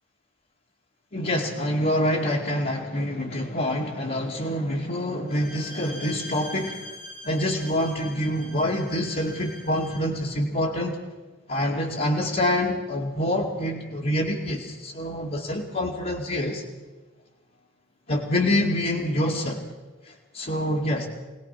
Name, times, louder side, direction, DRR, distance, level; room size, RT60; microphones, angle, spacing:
voice 1, 1.1-6.8 7.2-11.0 11.5-16.6 18.1-19.6 20.0-21.1, left 1 dB, 50° left, -5 dB, 2.5 m, -26 dB
Bowed string instrument, 5.3-10.1, left 1 dB, 90° left, 6.5 m, -42 dB
25.5 x 19.0 x 5.9 m, 1.2 s
head